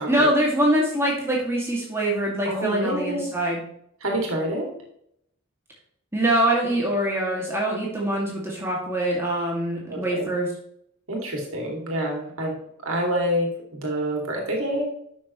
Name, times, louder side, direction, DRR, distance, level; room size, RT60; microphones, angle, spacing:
voice 1, 0.1-3.6 6.1-10.5, right 1 dB, 10° right, -3 dB, 2.3 m, -24 dB
voice 2, 2.4-3.2 4.0-4.7 9.9-10.3 11.1-12.5 12.8-14.8, equal, 70° right, 0 dB, 2.6 m, -27 dB
11.5 x 6.5 x 3.1 m, 0.71 s
head